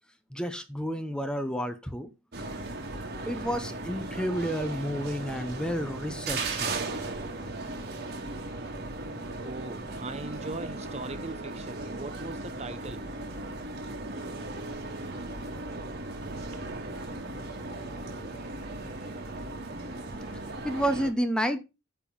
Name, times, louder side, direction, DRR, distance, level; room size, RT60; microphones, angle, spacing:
voice 1, 0.3-2.1 3.3-6.7 20.6-21.6, equal, 5° left, 0.8 m, -30 dB
sound 1, 2.3-21.1, right 2 dB, 50° right, 1.8 m, -37 dB
voice 2, 9.4-13.1, right 3 dB, 30° right, 0.7 m, -40 dB
Telephone, 10.7-11.0 11.3-12.4 12.9-13.0 13.4-13.5 14.0-15.1 16.3-16.9, right 5 dB, 75° right, 1.1 m, -49 dB
9.6 x 3.7 x 7.1 m
head